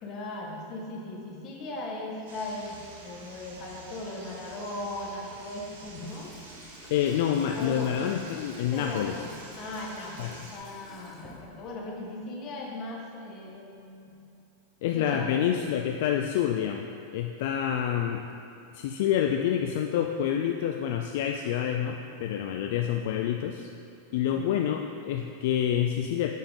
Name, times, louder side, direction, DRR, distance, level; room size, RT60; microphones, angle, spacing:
voice 1, 0.0-6.3 7.5-7.9 8.6-14.2 14.9-15.5 24.3-24.5, left 2 dB, 35° left, -1 dB, 1.3 m, -38 dB
sound 1, 2.3-10.6, right 2 dB, 85° right, 1.2 m, -48 dB
Water tap faucet / Sink (filling or washing), 5.7-12.0, left 2 dB, 15° left, 1.1 m, -52 dB
voice 2, 6.9-9.2 10.2-10.4 14.8-16.9 17.1-18.2 18.7-23.7 24.1-26.3, left 9 dB, 65° left, 4 dB, 0.3 m, -27 dB
7.1 x 5.7 x 3.7 m, 2.7 s
supercardioid pair, 135°, 0 cm